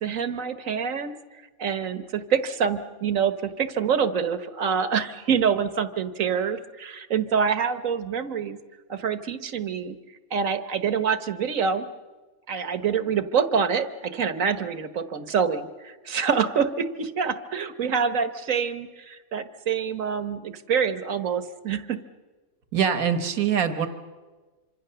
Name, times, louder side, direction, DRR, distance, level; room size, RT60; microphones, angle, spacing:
voice 1, 0.0-1.1 1.6-8.6 8.9-10.0 10.3-11.9 12.5-22.0, right 6 dB, 70° right, 11 dB, 1.4 m, -26 dB
voice 2, 22.7-23.9, right 8 dB, 85° right, 9 dB, 1.8 m, -23 dB
26.0 x 25.5 x 6.8 m, 1.3 s
omnidirectional pair, 1.5 m